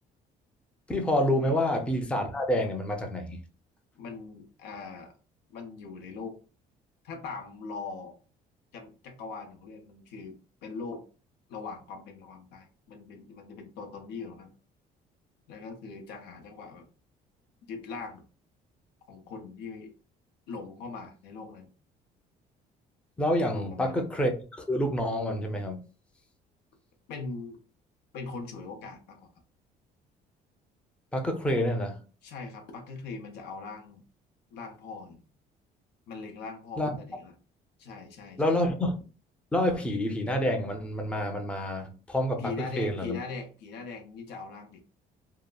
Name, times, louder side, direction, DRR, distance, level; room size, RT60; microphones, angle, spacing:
voice 1, 0.9-3.4 23.2-25.8 31.1-32.0 36.8-37.0 38.4-39.0 39.5-43.2, left 1 dB, 5° left, 0.5 m, -28 dB
voice 2, 4.0-5.1 5.5-6.4 7.0-8.1 8.7-11.0 11.5-14.5 15.5-16.9 17.7-18.2 19.1-19.9 20.5-21.7 23.4-24.1 27.1-27.6 28.1-29.3 32.2-34.0 34.5-35.2 36.1-37.3 37.8-38.6 42.4-44.8, left 4 dB, 85° left, 0.7 m, -41 dB
2.7 x 2.4 x 2.2 m
cardioid pair, 110°, 17 cm